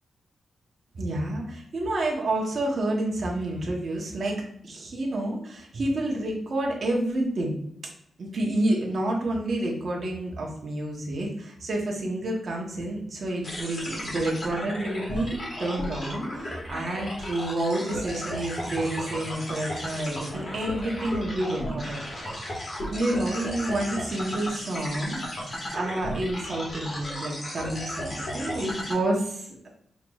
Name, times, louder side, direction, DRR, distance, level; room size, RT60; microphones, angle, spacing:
voice 1, 0.9-7.6 8.2-22.0 22.9-29.7, right 1 dB, 50° right, -1 dB, 0.9 m, -29 dB
sound 1, 13.4-28.9, equal, 40° left, 1.3 m, -34 dB
5.7 x 3.0 x 2.3 m, 0.72 s
wide cardioid pair, 160°, 0 cm